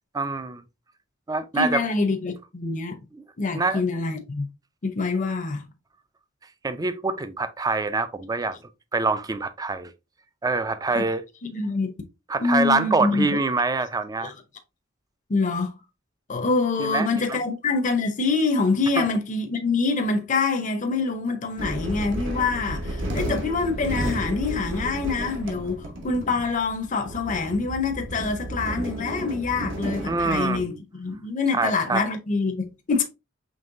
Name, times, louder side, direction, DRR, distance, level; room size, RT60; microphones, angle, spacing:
voice 1, 0.1-0.6 1.3-1.8 3.1-3.2 3.5-3.8 6.6-8.6 8.9-9.9 10.4-11.2 12.3-14.3 16.8-17.4 19.0-19.1 30.1-30.8 31.5-32.1, right 3 dB, 20° right, 0.4 m, -25 dB
voice 2, 1.6-3.0 3.4-4.5 4.8-5.7 11.0-11.1 11.4-12.0 12.4-13.4 14.2-14.3 15.3-15.7 16.3-33.0, left 4 dB, 40° left, 0.6 m, -25 dB
sound 1, 21.6-30.6, right 1 dB, 70° right, 1.1 m, -32 dB
5.3 x 3.1 x 2.6 m
head